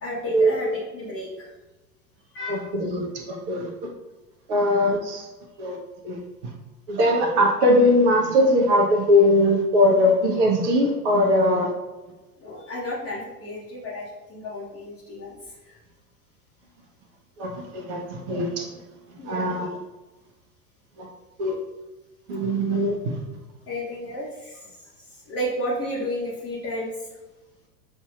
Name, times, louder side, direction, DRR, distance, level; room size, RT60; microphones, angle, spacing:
voice 1, 0.0-1.5 2.3-2.7 4.6-4.7 12.4-15.8 19.2-19.6 22.9-23.0 23.7-27.1, equal, 30° left, -8 dB, 1.1 m, -33 dB
voice 2, 2.5-3.9 4.5-5.3 5.6-5.8 6.0-6.5 6.9-11.7 17.4-18.7 19.2-19.8 21.0-21.1 21.4-21.6 22.3-23.2, left 1 dB, 45° right, 1 dB, 1.1 m, -21 dB
7.1 x 2.8 x 2.4 m, 1.1 s
figure-of-eight pair, 80°, 47 cm